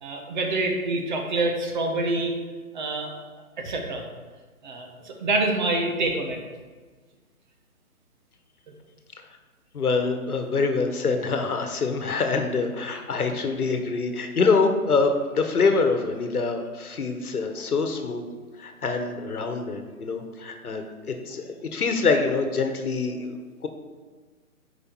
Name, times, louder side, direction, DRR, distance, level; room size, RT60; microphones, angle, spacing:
voice 1, 0.0-2.3 2.7-3.1 3.6-4.0 4.6-6.4, right 2 dB, 30° right, 2 dB, 1.1 m, -26 dB
voice 2, 9.7-18.2 18.6-23.3 23.6-23.7, left 4 dB, 75° left, 6 dB, 1.3 m, -25 dB
8.5 x 5.1 x 4.6 m, 1.4 s
hypercardioid pair, 150°, 45 cm